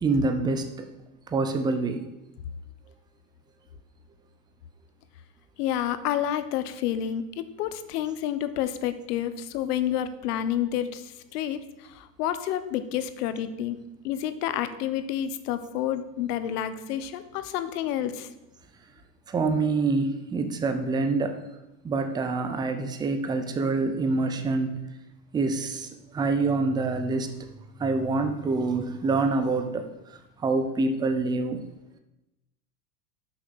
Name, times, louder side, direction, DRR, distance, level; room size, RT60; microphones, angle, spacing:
voice 1, 0.0-0.9 1.3-2.0 19.3-21.4 21.8-24.8 25.3-25.9 26.1-27.3 27.8-31.6, right 3 dB, 10° right, 7 dB, 0.5 m, -26 dB
voice 2, 5.6-13.8 14.0-18.3, left 10 dB, 70° left, 12 dB, 0.9 m, -29 dB
6.4 x 5.9 x 6.2 m, 0.93 s
supercardioid pair, 130°, 48 cm